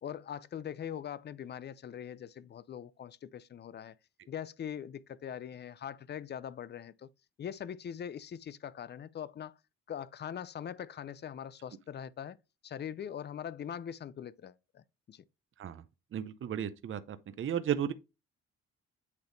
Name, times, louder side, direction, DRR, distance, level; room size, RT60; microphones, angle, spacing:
voice 1, 0.0-4.0 4.3-7.1 7.4-9.6 9.9-12.4 12.6-15.2, left 9 dB, 35° left, 0.5 m, -42 dB
voice 2, 16.1-17.9, right 9 dB, 45° right, 0.6 m, -34 dB
8.2 x 3.4 x 3.9 m
cardioid pair, 90°, 30 cm